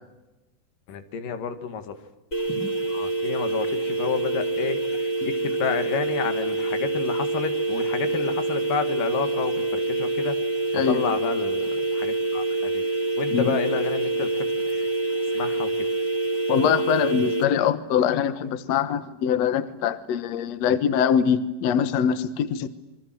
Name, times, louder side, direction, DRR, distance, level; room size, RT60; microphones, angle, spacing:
voice 1, 0.9-2.0 2.9-10.4 10.9-12.8 13.2-14.9 15.3-15.7, left 7 dB, 90° left, 9 dB, 3.5 m, -30 dB
sound 1, 2.3-17.4, right 3 dB, 25° left, 3.7 m, -26 dB
voice 2, 16.5-22.7, left 8 dB, 60° left, 13 dB, 2.3 m, -23 dB
28.5 x 23.5 x 7.8 m, 1.0 s
omnidirectional pair, 3.7 m